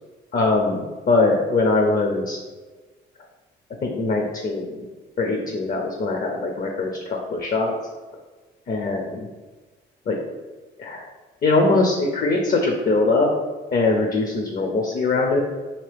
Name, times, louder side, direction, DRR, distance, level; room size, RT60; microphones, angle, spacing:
voice 1, 0.3-2.4 3.8-4.9 5.2-7.7 8.7-9.3 10.1-10.2 10.8-11.0 11.4-13.3 13.7-15.4, left 3 dB, 45° left, 2 dB, 0.5 m, -22 dB
2.9 x 2.8 x 3.3 m, 1.3 s
cardioid pair, 90°, 20 cm